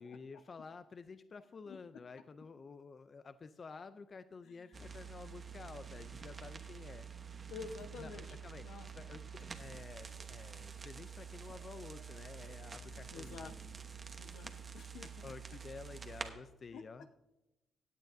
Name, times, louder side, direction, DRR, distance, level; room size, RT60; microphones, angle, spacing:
voice 1, 0.0-7.1 8.0-8.7 8.9-13.8 14.6-14.8 15.2-17.2, left 4 dB, 40° left, 12 dB, 0.4 m, -51 dB
voice 2, 4.5-4.8 7.5-8.2 8.6-8.9 13.1-13.5 14.2-15.3 16.7-16.8, left 5 dB, 80° left, 6 dB, 1.0 m, -49 dB
sound 1, 4.7-16.3, right 6 dB, 35° right, 1.0 m, -48 dB
16.5 x 9.0 x 2.6 m, 0.95 s
cardioid pair, 90°, 0 cm